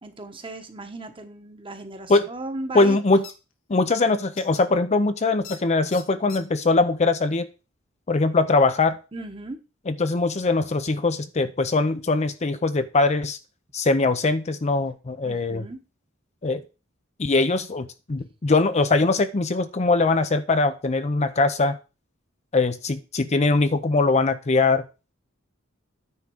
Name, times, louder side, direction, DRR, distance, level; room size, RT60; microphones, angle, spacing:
voice 1, 0.0-3.0 9.1-9.6 15.2-15.8, right 2 dB, 25° right, 7 dB, 1.2 m, -36 dB
voice 2, 2.7-3.2 3.7-7.5 8.1-9.0 9.9-13.4 13.7-15.6 16.4-16.6 17.2-21.8 22.5-24.8, left 3 dB, 35° left, 10 dB, 0.6 m, -21 dB
sound 1, 3.2-3.3 4.4-4.6 5.4-5.6 5.9-6.4, left 8 dB, 80° left, 1.4 m, -40 dB
9.6 x 3.8 x 7.0 m, 0.31 s
head